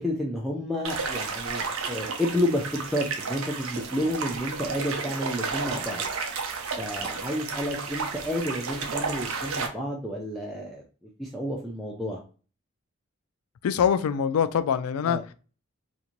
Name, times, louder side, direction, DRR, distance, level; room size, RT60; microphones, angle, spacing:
voice 1, 0.0-6.0 6.8-10.8 11.2-12.2 15.0-15.2, equal, ahead, 0.4 m, -30 dB
sound 1, 0.8-9.7, right 4 dB, 75° right, 0.6 m, -32 dB
voice 2, 13.6-15.3, left 7 dB, 90° left, 0.3 m, -24 dB
3.0 x 2.5 x 2.4 m
head